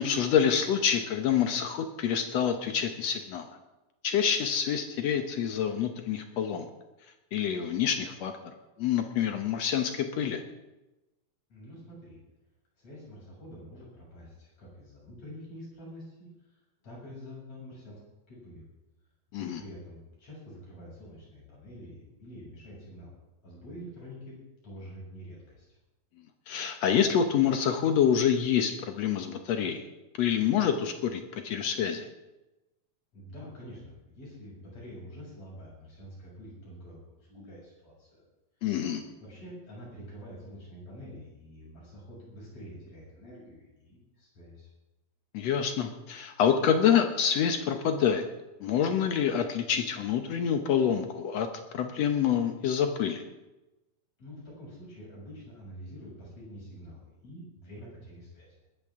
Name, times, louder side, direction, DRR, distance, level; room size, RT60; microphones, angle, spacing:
voice 1, 0.0-3.4 4.0-6.7 7.3-8.3 8.8-10.4 19.3-19.6 26.5-29.8 30.2-32.1 38.6-39.0 45.3-48.2 48.6-51.5 51.7-53.2, left 8 dB, 70° left, 6 dB, 1.6 m, -27 dB
voice 2, 11.5-12.2 12.8-18.0 18.3-18.6 19.4-24.4 24.6-25.7 33.1-38.2 39.2-44.7 54.2-58.5, equal, 45° left, -5 dB, 8.3 m, -47 dB
20.5 x 13.5 x 3.7 m, 1.0 s
omnidirectional pair, 4.2 m